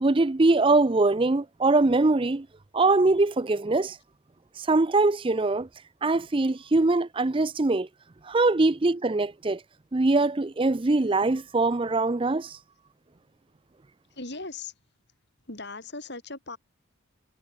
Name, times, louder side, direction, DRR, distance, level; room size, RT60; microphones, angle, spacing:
voice 1, 0.0-2.5 2.7-4.0 4.6-5.7 6.0-7.9 8.3-9.6 9.9-12.6, right 2 dB, 25° right, 0.5 m, -22 dB
voice 2, 14.1-14.8 15.4-16.6, left 3 dB, 55° left, 6.4 m, -38 dB
head